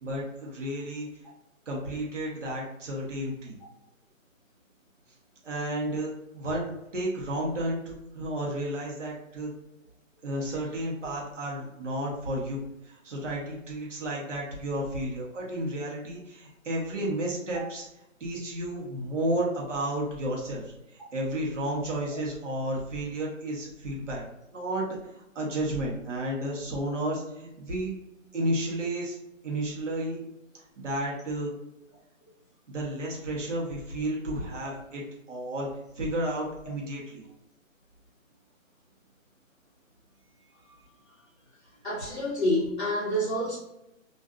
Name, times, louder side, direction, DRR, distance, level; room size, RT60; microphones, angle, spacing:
voice 1, 0.0-1.1 1.7-3.5 5.4-9.5 10.2-17.8 18.2-20.6 20.9-24.2 24.5-24.9 25.1-27.9 28.3-29.2 29.4-30.2 30.8-31.5 32.7-35.0 35.3-35.7 36.0-37.2, right 1 dB, 60° right, -3 dB, 1.1 m, -32 dB
voice 2, 41.8-43.6, equal, 35° left, -5 dB, 0.7 m, -28 dB
2.5 x 2.5 x 2.4 m, 0.88 s
hypercardioid pair, 175°, 41 cm